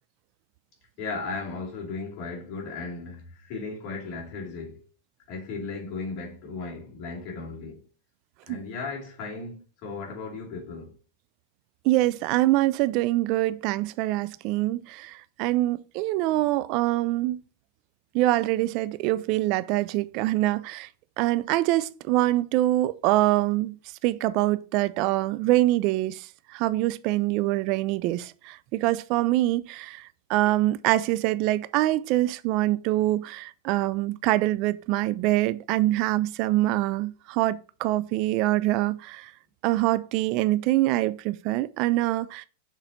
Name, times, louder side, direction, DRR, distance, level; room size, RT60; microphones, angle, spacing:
voice 1, 1.0-4.8 5.3-7.8 8.5-11.0, left 4 dB, 45° left, 2.6 m, -36 dB
voice 2, 11.8-17.4 18.1-20.9 21.2-23.8 24.0-39.3 39.6-42.4, right 16 dB, 50° right, 0.4 m, -24 dB
6.3 x 3.9 x 4.3 m
hypercardioid pair, 125°, 0 cm